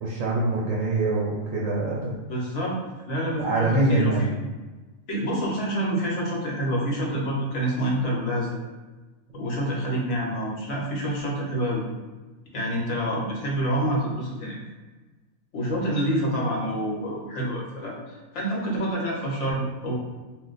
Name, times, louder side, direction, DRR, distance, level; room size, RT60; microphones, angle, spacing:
voice 1, 0.0-2.1 3.4-4.3, right 2 dB, 80° right, -4 dB, 1.0 m, -24 dB
voice 2, 2.3-2.7 3.1-4.3 5.1-8.6 9.3-11.8 12.5-14.6 15.5-20.0, right 1 dB, 65° left, -3 dB, 1.1 m, -27 dB
2.4 x 2.2 x 3.8 m, 1.2 s
omnidirectional pair, 1.4 m